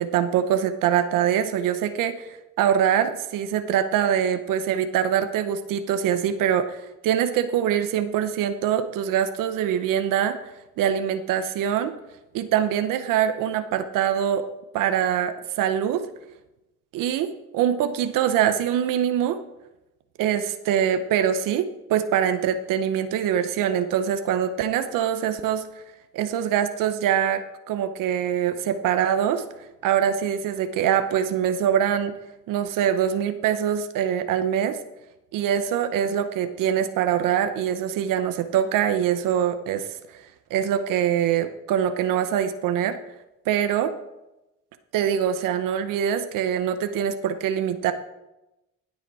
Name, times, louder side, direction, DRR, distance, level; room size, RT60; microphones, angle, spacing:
voice 1, 0.0-10.4 10.8-11.9 12.3-14.4 14.7-16.0 16.9-19.4 20.2-25.6 26.1-29.4 29.8-32.1 32.5-34.8 35.3-39.9 40.1-40.2 40.5-43.0 43.5-43.9 44.9-47.9, right 9 dB, 90° right, 9 dB, 0.8 m, -24 dB
16.5 x 6.3 x 4.8 m, 0.96 s
cardioid pair, 80°, 31 cm